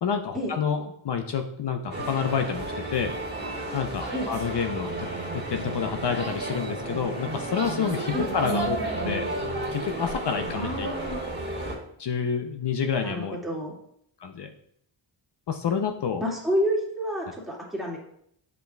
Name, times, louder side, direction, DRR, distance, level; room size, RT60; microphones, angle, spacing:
voice 1, 0.0-3.1 3.7-4.9 5.3-9.3 9.7-10.9 12.0-13.4 14.2-14.5 15.5-16.2, left 6 dB, 55° left, 5 dB, 0.6 m, -28 dB
sound 1, 1.9-11.7, right 2 dB, 25° right, 2.3 m, -32 dB
voice 2, 10.6-11.2 13.0-13.7 16.2-18.0, equal, ahead, -5 dB, 2.0 m, -29 dB
7.9 x 5.3 x 2.2 m, 0.70 s
wide cardioid pair, 75°, 50 cm